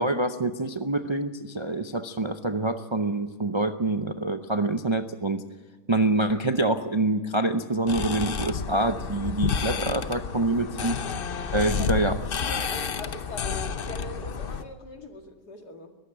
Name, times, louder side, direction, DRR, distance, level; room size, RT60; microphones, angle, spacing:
voice 1, 0.0-5.4 5.9-11.0 11.5-12.1, right 2 dB, 40° right, 7 dB, 0.4 m, -26 dB
sound 1, 7.9-14.6, left 6 dB, 45° left, 0.8 m, -30 dB
voice 2, 11.5-16.0, left 1 dB, 70° left, 4 dB, 2.7 m, -42 dB
21.5 x 15.0 x 8.9 m, 1.4 s
omnidirectional pair, 1.7 m